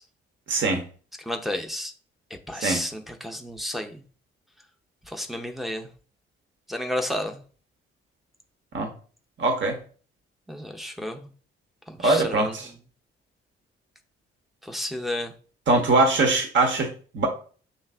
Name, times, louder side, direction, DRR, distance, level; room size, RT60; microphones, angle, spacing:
voice 1, 0.5-0.8 2.6-2.8 8.7-8.9 9.4-9.8 12.0-12.7 15.7-17.3, right 2 dB, 40° right, 3 dB, 1.2 m, -22 dB
voice 2, 1.2-1.9 2.5-4.0 5.0-5.9 6.7-7.4 10.5-11.3 11.9-12.8 14.6-15.3, left 1 dB, ahead, 3 dB, 0.8 m, -32 dB
6.7 x 3.2 x 2.4 m, 0.41 s
figure-of-eight pair, 45°, 30 cm